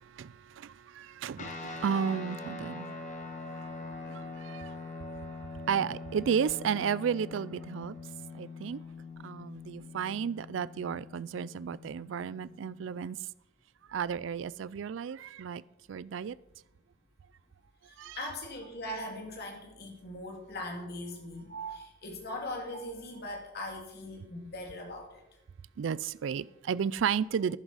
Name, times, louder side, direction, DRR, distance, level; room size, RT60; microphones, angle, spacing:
voice 1, 0.2-2.9 4.1-4.7 5.7-7.9 8.3-8.8 9.2-13.2 13.9-15.6 15.9-16.4 18.0-18.2 25.8-27.6, right 7 dB, 70° right, 0.3 m, -33 dB
sound 1, 1.4-13.1, left 3 dB, 40° left, 1.5 m, -43 dB
voice 2, 17.8-25.2, left 1 dB, 55° left, 2.2 m, -40 dB
12.0 x 11.0 x 4.0 m
head